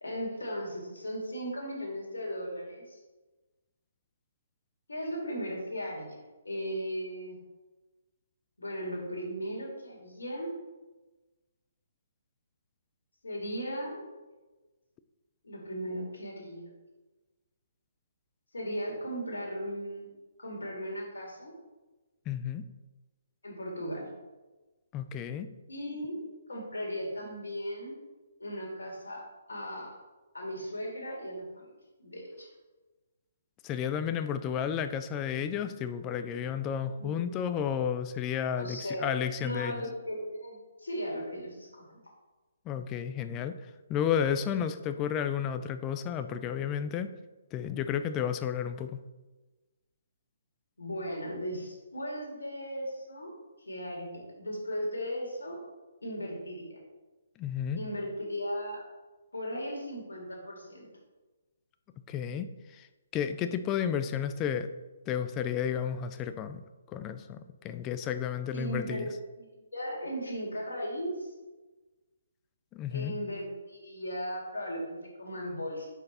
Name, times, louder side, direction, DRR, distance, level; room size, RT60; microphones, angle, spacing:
voice 1, 0.0-3.0 4.9-6.2 6.4-7.4 8.6-10.5 13.2-14.0 15.4-16.7 18.5-20.1 20.4-21.5 23.4-24.1 25.7-27.9 28.4-29.2 29.5-29.9 30.3-31.7 32.0-32.5 37.0-37.5 38.5-39.1 39.4-42.0 50.8-53.3 53.6-55.6 56.0-56.8 57.8-58.8 59.3-60.9 68.5-69.1 69.4-71.3 72.9-75.9, equal, 75° left, -2 dB, 2.0 m, -37 dB
voice 2, 22.3-22.6 24.9-25.5 33.6-39.8 42.7-47.1 47.5-49.0 57.4-57.8 62.1-62.9 63.1-64.7 65.1-66.6 66.9-69.1 72.7-73.1, left 8 dB, 20° left, 10 dB, 0.4 m, -32 dB
5.2 x 4.6 x 4.2 m, 1.2 s
figure-of-eight pair, 135°, 0 cm